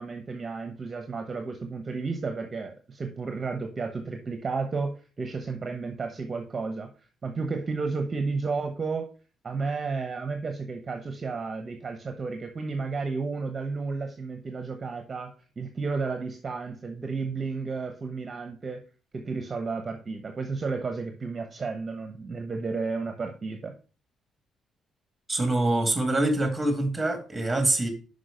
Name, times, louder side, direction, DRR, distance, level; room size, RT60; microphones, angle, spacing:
voice 1, 0.0-6.9 7.2-9.1 9.4-18.8 19.1-23.7, right 4 dB, 35° right, 1.0 m, -32 dB
voice 2, 25.3-27.9, right 2 dB, 15° right, 2.1 m, -25 dB
6.1 x 5.2 x 5.1 m
cardioid pair, 90°, 0 cm